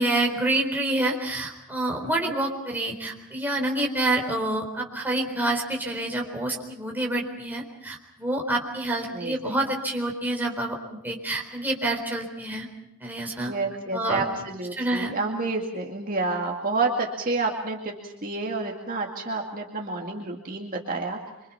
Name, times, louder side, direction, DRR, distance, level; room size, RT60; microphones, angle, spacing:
voice 1, 0.0-12.7 13.0-13.5 13.9-14.2 14.8-15.1, right 1 dB, 10° right, 0 dB, 4.1 m, -27 dB
voice 2, 2.0-2.4 9.1-9.6 13.5-21.2, right 3 dB, 40° right, 1 dB, 2.3 m, -29 dB
26.5 x 25.0 x 5.9 m, 0.86 s
head